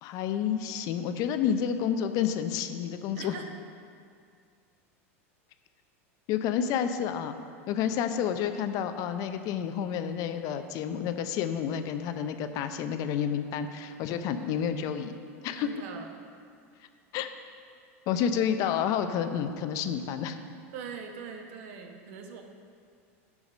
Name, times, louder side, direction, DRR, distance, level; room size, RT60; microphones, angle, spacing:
voice 1, 0.0-3.4 6.3-7.3 7.7-15.1 15.4-15.7 17.1-17.3 18.1-20.4, left 8 dB, 50° left, 9 dB, 0.6 m, -30 dB
voice 2, 3.2-3.5 15.5-16.1 20.7-22.4, right 6 dB, 65° right, 4 dB, 1.1 m, -41 dB
10.0 x 4.8 x 5.4 m, 2.3 s
hypercardioid pair, 100°, 8 cm